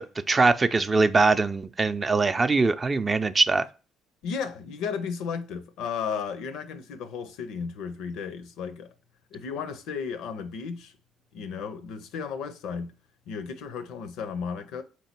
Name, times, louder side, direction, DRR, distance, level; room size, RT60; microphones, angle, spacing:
voice 1, 0.0-3.7, right 3 dB, 30° right, 0.4 m, -22 dB
voice 2, 4.2-8.9 9.3-10.9 11.3-12.9 13.3-14.8, left 6 dB, 75° left, 0.5 m, -34 dB
3.8 x 2.9 x 4.3 m
hypercardioid pair, 60°, 0 cm